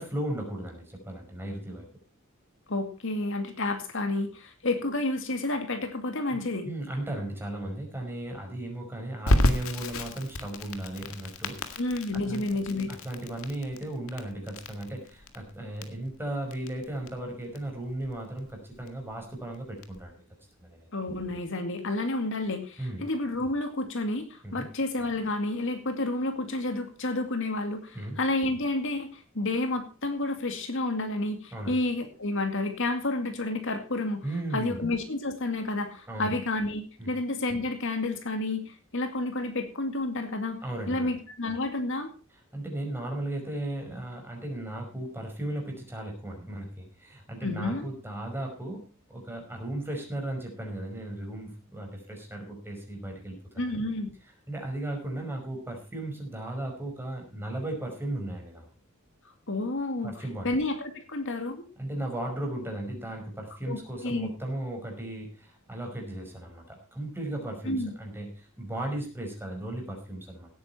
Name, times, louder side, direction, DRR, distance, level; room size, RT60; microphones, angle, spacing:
voice 1, 0.0-1.9 6.3-11.8 12.1-12.6 12.9-20.2 20.6-20.9 22.8-23.0 24.4-24.7 27.9-28.2 31.5-31.8 34.2-34.8 36.1-36.4 37.0-37.1 40.6-41.1 42.5-53.4 53.7-53.8 54.5-58.7 60.0-60.5 61.8-70.5, right 1 dB, 10° right, 1 dB, 5.3 m, -36 dB
voice 2, 2.7-6.7 11.8-12.9 20.9-34.2 34.5-40.6 40.9-42.1 47.4-47.9 53.6-54.1 59.5-61.6 63.7-64.3 67.7-67.9, left 2 dB, 65° left, 6 dB, 2.3 m, -30 dB
Crackle, 9.3-20.0, left 1 dB, 90° left, 1.9 m, -32 dB
17.5 x 9.6 x 4.3 m, 0.34 s
head